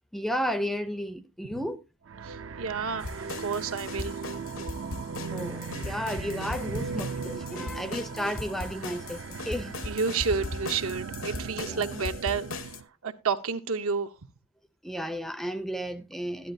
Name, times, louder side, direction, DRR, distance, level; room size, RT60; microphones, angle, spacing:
voice 1, 0.1-1.8 4.6-4.7 5.3-9.8 11.6-12.0 14.8-16.5, equal, ahead, 0.5 m, -33 dB
sound 1, 2.1-12.8, right 5 dB, 60° right, 0.5 m, -38 dB
voice 2, 2.2-4.2 6.7-6.8 9.9-12.7 13.0-14.1, right 5 dB, 80° right, 0.9 m, -30 dB
sound 2, 3.0-12.8, left 3 dB, 65° left, 0.9 m, -39 dB
13.0 x 11.0 x 2.6 m
head